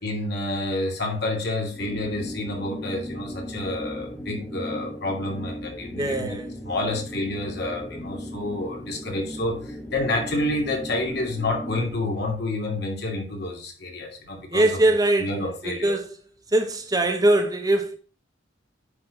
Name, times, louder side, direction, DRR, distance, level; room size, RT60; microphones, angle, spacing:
voice 1, 0.0-6.4 6.6-14.7 15.2-15.9, left 2 dB, 55° left, 2.5 m, -29 dB
sound 1, 1.7-12.1, equal, 10° left, 1.0 m, -37 dB
voice 2, 6.0-6.5 14.5-15.3 15.6-16.1 16.5-18.0, right 1 dB, 20° right, 1.0 m, -21 dB
9.9 x 4.4 x 5.1 m
head